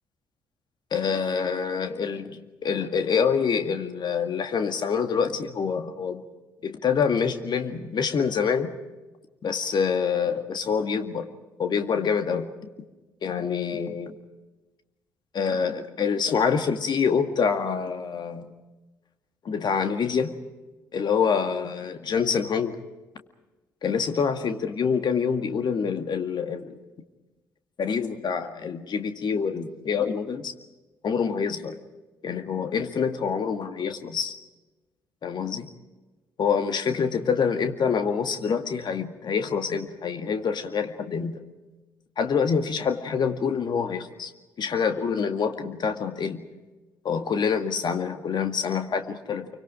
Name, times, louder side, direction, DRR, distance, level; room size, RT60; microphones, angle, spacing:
voice 1, 0.9-6.2 6.6-8.7 9.4-11.3 11.6-12.5 13.2-14.1 15.3-18.5 19.5-20.4 20.9-22.8 23.8-26.8 27.8-30.5 31.0-31.7 32.2-34.3 35.2-35.7 36.4-41.4 42.2-44.3 44.6-46.5 47.0-49.5, left 6 dB, 45° left, 7 dB, 2.0 m, -26 dB
28.5 x 24.5 x 5.0 m, 1.2 s
figure-of-eight pair, 40°, 10 cm